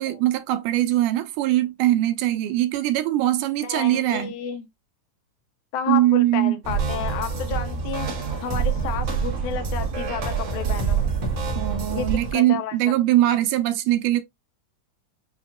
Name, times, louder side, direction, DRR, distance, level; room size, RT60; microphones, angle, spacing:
voice 1, 0.0-4.3 5.9-6.6 11.6-14.2, right 14 dB, 85° right, 2.2 m, -21 dB
voice 2, 3.6-4.7 5.7-8.1 8.4-11.0 11.9-12.8, left 7 dB, 75° left, 2.1 m, -31 dB
sound 1, 6.6-12.3, right 5 dB, 55° right, 1.4 m, -26 dB
7.2 x 2.7 x 2.3 m
omnidirectional pair, 3.7 m